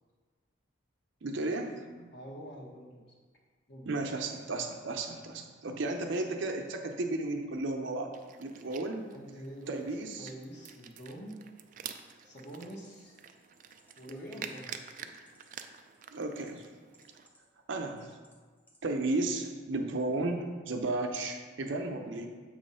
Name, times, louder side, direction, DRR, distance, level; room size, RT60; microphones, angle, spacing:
voice 1, 1.2-2.1 3.9-8.1 8.4-9.0 9.7-10.3 16.1-16.7 17.7-18.1 18.8-22.3, right 2 dB, 70° right, 4 dB, 0.7 m, -34 dB
voice 2, 2.1-3.0 3.7-3.9 9.1-9.8 10.2-11.4 12.2-13.2 14.0-14.8, right 1 dB, 55° left, -2 dB, 1.3 m, -45 dB
sound 1, 8.1-17.3, right 8 dB, 40° right, 0.3 m, -48 dB
sound 2, 12.2-16.6 16.9-17.5 18.0-18.4 18.7-18.8, equal, 10° left, 0.6 m, -52 dB
7.4 x 3.1 x 5.4 m, 1.5 s
head